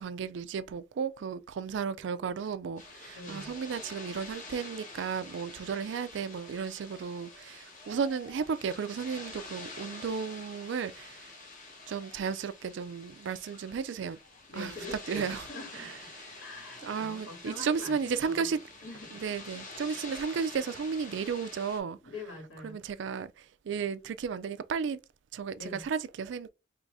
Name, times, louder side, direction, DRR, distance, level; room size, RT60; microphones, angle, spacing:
voice 1, 0.0-11.3 11.9-14.2 14.6-14.7 15.1-15.4 16.8-18.6 19.2-22.0 22.6-23.3 23.7-25.0 25.3-26.5, right 6 dB, 70° right, 0.3 m, -34 dB
sound 1, 2.8-21.8, left 3 dB, 45° left, 1.2 m, -47 dB
voice 2, 3.1-3.5 14.5-19.2 19.5-19.7 20.0-20.1 21.9-22.9 25.6-25.8, left 2 dB, 85° left, 2.3 m, -45 dB
4.7 x 3.1 x 2.5 m
head